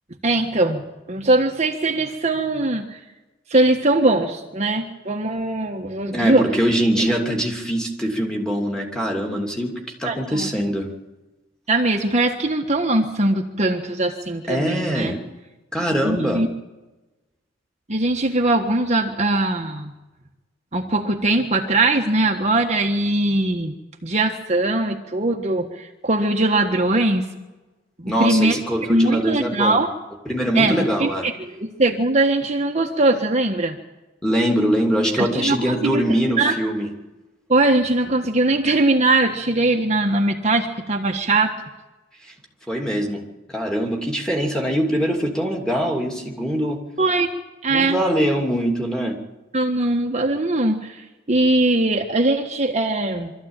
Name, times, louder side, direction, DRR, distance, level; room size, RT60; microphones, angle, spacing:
voice 1, 0.2-3.0 3.5-6.5 7.0-7.1 10.0-10.5 11.7-15.2 16.0-16.5 17.9-19.9 20.7-23.7 24.0-27.3 28.0-28.6 28.9-29.9 30.5-33.8 35.2-36.5 37.5-41.5 47.0-47.3 47.6-48.0 49.5-53.3, right 2 dB, 35° right, 2 dB, 1.4 m, -21 dB
voice 2, 6.1-10.9 14.5-15.2 15.7-16.4 28.1-29.8 30.3-31.3 34.2-36.9 42.7-43.2 43.5-46.8 47.7-49.2, equal, 5° left, 0 dB, 2.9 m, -23 dB
24.0 x 14.0 x 9.0 m, 1.1 s
head